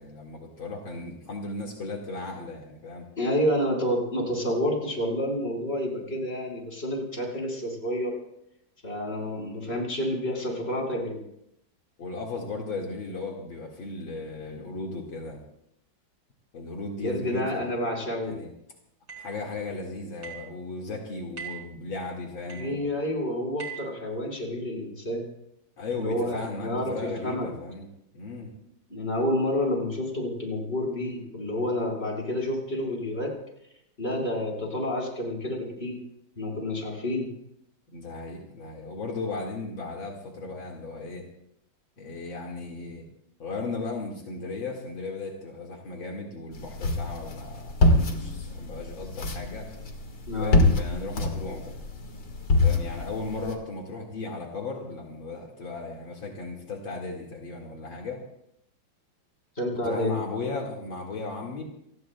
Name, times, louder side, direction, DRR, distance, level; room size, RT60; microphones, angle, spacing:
voice 1, 0.0-3.1 12.0-15.4 16.5-17.7 18.2-18.5 19.2-22.9 25.8-28.5 37.9-41.2 42.0-43.0 43.4-47.8 48.1-49.7 50.4-51.8 52.6-58.2 59.8-61.6, left 3 dB, 70° left, -1 dB, 2.8 m, -36 dB
voice 2, 3.2-8.1 8.8-11.2 17.0-18.4 22.5-25.2 25.9-26.9 27.2-27.5 28.9-33.3 34.0-36.0 36.4-37.3 50.3-50.6 59.6-60.1, left 1 dB, 30° left, 0 dB, 5.0 m, -29 dB
sound 1, 19.1-19.4 20.2-20.5 21.4-21.7 22.5-22.8 23.6-24.0, right 8 dB, 70° right, 5.7 m, -40 dB
sound 2, 46.5-53.5, left 2 dB, 55° left, 2.4 m, -26 dB
29.0 x 19.5 x 2.3 m, 0.76 s
omnidirectional pair, 2.3 m